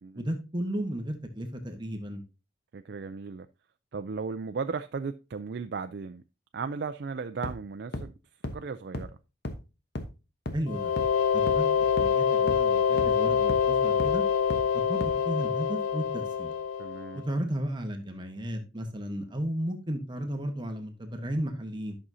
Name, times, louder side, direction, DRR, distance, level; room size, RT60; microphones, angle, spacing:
voice 1, 0.1-2.2 10.5-10.9 11.5-14.2 14.7-16.5 17.1-22.0, equal, 20° right, 1.1 m, -34 dB
voice 2, 2.7-3.5 3.9-6.2 6.5-8.1 8.5-9.1 16.8-17.2, right 5 dB, 55° right, 0.4 m, -36 dB
sound 1, 7.4-7.5 7.9-8.0 8.4-8.5 8.9-9.0 9.4-9.5 9.9-10.0 10.5-10.6 11.0-11.1 11.5-11.6 12.0-12.1 12.5-12.6 13.0-13.1 13.5-13.6 14.0-14.1 14.5-14.6 15.0-15.1, left 1 dB, 55° left, 1.1 m, -33 dB
sound 2, 10.7-17.3, left 7 dB, 85° left, 0.3 m, -26 dB
11.5 x 6.2 x 2.7 m
head